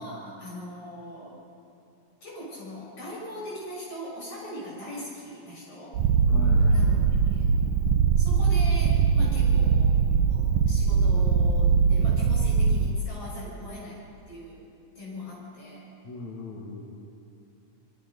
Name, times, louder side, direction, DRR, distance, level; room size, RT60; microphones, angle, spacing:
voice 1, 0.0-1.4 2.2-6.0 6.7-7.5 8.2-9.9 10.3-14.0 14.3-14.6 14.9-15.9, equal, 50° left, -5 dB, 8.3 m, -40 dB
Purr, 5.9-12.9, right 6 dB, 85° right, 2.2 m, -21 dB
voice 2, 6.3-6.9 9.1-9.6 16.0-16.8, left 3 dB, 70° left, -2 dB, 3.5 m, -39 dB
25.5 x 22.5 x 5.5 m, 2.7 s
omnidirectional pair, 3.4 m